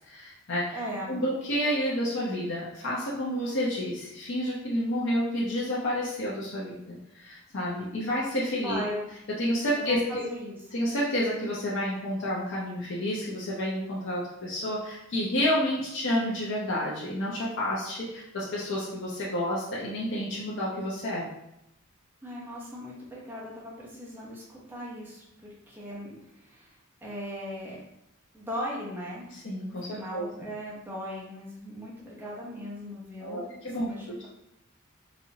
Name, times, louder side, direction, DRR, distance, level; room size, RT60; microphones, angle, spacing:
voice 1, 0.0-0.8 1.1-8.8 9.4-10.3 10.7-21.3 29.3-30.3 33.2-33.9, equal, 60° left, -6 dB, 0.7 m, -30 dB
voice 2, 0.7-1.3 8.6-9.0 9.8-10.5 22.2-26.7 27.0-27.8 28.3-29.2 29.7-33.4 33.8-34.3, equal, 10° right, -6 dB, 0.9 m, -38 dB
4.1 x 2.6 x 2.8 m, 0.82 s
head